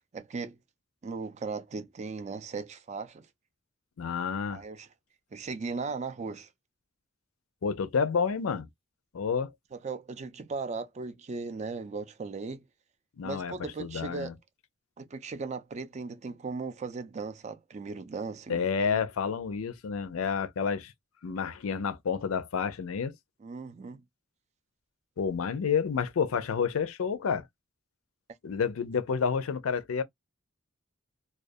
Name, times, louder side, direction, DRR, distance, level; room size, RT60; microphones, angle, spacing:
voice 1, 0.1-0.6 1.0-3.3 4.5-4.9 5.3-6.5 9.7-12.6 13.2-14.3 15.0-19.0 23.4-24.0, right 4 dB, 35° right, 0.4 m, -37 dB
voice 2, 4.0-4.6 7.6-8.7 9.1-9.5 13.2-13.5 13.8-14.3 18.5-20.9 21.2-23.1 25.2-27.4 28.4-30.0, left 6 dB, 85° left, 0.5 m, -29 dB
2.3 x 2.3 x 2.5 m
head